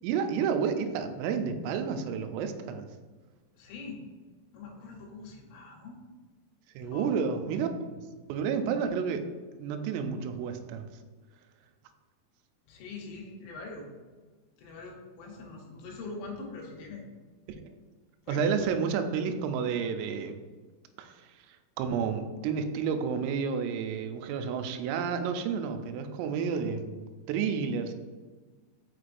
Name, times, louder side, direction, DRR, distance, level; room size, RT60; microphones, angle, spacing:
voice 1, 0.0-2.9 6.8-8.0 8.3-9.3 9.6-10.9 18.3-20.4 21.0-27.9, right 6 dB, 90° right, 7 dB, 3.2 m, -31 dB
voice 2, 3.5-4.1 4.5-6.0 6.8-7.2 12.7-13.9 14.6-17.0 18.2-18.4, left 3 dB, 80° left, 0 dB, 3.3 m, -43 dB
6.2 x 6.1 x 2.5 m, 1.4 s
omnidirectional pair, 5.7 m